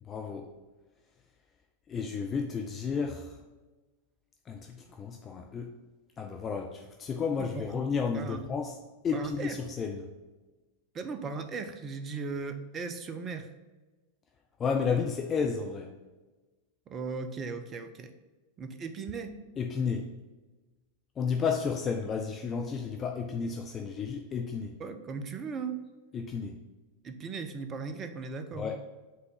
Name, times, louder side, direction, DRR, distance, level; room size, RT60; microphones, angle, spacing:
voice 1, 0.0-0.5 1.9-3.4 4.5-5.7 6.2-8.8 9.0-10.1 14.6-15.9 19.6-20.1 21.2-24.7 26.1-26.6 28.6-28.8, left 5 dB, 25° left, 3 dB, 0.5 m, -32 dB
voice 2, 7.4-7.7 8.1-8.4 9.1-9.6 10.9-13.5 16.9-18.1 18.6-19.3 24.8-25.8 27.0-28.7, right 4 dB, 25° right, 8 dB, 0.7 m, -37 dB
5.5 x 3.9 x 5.5 m, 1.2 s
figure-of-eight pair, 90°, 0 cm